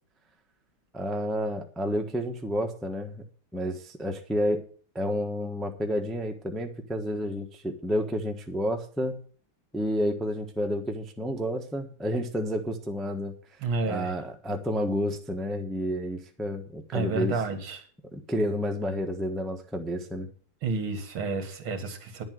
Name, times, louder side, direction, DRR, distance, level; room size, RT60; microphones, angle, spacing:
voice 1, 0.9-3.2 3.5-4.7 4.9-9.2 9.7-13.3 13.9-17.3 18.1-20.3, equal, ahead, 0.8 m, -30 dB
voice 2, 13.6-14.1 16.9-17.9 20.6-22.2, right 3 dB, 65° right, 2.6 m, -30 dB
10.5 x 7.6 x 7.7 m
omnidirectional pair, 2.4 m